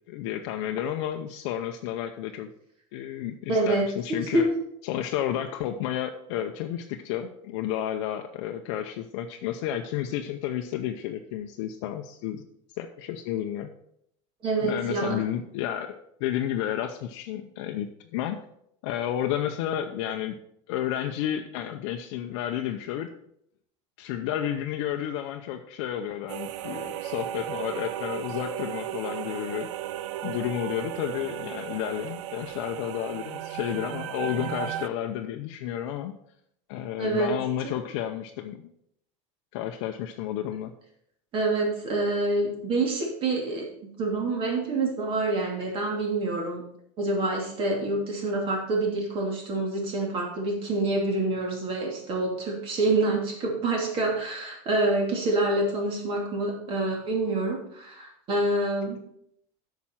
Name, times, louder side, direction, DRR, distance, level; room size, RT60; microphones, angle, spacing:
voice 1, 0.1-2.5 2.9-4.5 4.8-12.4 12.7-13.7 14.6-18.4 18.8-20.4 20.7-23.1 24.0-29.7 30.2-36.1 36.7-38.7 39.5-40.7, left 11 dB, 70° left, 4 dB, 0.7 m, -31 dB
voice 2, 3.5-4.5 14.4-15.2 37.0-37.4 37.6-37.7 41.3-43.7 44.0-46.6 47.0-59.0, right 2 dB, 35° right, 0 dB, 2.8 m, -27 dB
sound 1, 26.3-34.9, right 12 dB, 80° right, 0.5 m, -35 dB
8.7 x 5.9 x 5.9 m, 0.74 s
cardioid pair, 155°, 15 cm